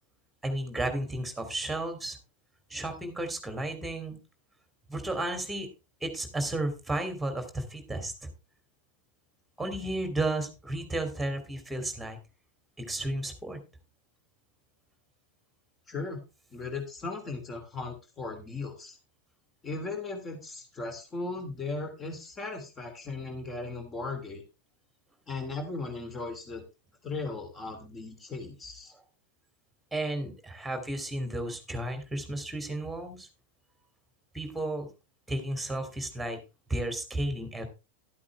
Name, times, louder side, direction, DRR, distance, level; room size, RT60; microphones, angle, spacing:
voice 1, 0.4-2.2 2.7-4.2 4.9-5.7 6.0-8.3 9.6-12.2 12.8-13.6 29.9-33.3 34.3-34.9 35.3-36.4 36.7-37.7, right 1 dB, 5° right, 7 dB, 2.9 m, -33 dB
voice 2, 15.9-16.2 16.5-19.0 19.6-24.4 25.3-26.6 27.0-28.9, left 3 dB, 20° left, 5 dB, 2.9 m, -37 dB
13.0 x 8.5 x 3.3 m, 0.29 s
figure-of-eight pair, 90°, 0 cm